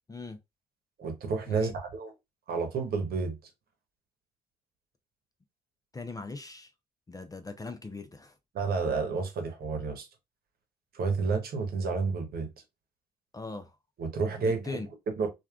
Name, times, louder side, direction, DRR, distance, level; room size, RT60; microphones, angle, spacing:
voice 1, 1.0-2.1 2.5-3.4 8.5-10.1 10.9-12.5 14.0-15.3, right 4 dB, 55° right, 1.1 m, -30 dB
voice 2, 5.9-6.7 7.1-8.3 13.3-13.7 14.2-14.9, left 3 dB, 20° left, 0.6 m, -40 dB
3.4 x 2.3 x 2.4 m
hypercardioid pair, 50°, 19 cm